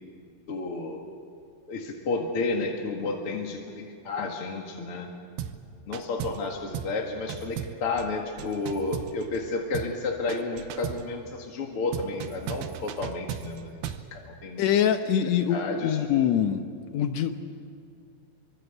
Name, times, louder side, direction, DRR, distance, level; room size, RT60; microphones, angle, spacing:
voice 1, 0.5-1.0 1.7-5.1 5.9-14.7 15.5-16.0, left 3 dB, 45° left, 0 dB, 2.2 m, -31 dB
sound 1, 5.4-5.6 5.9-6.5 6.7-7.0 7.3-9.5 9.7-10.0 10.3-11.1 11.9-14.1, right 10 dB, 90° right, 2.9 m, -36 dB
voice 2, 14.6-16.6 16.9-17.3, left 9 dB, 85° left, 7 dB, 1.5 m, -24 dB
26.0 x 24.5 x 8.1 m, 2.3 s
omnidirectional pair, 4.5 m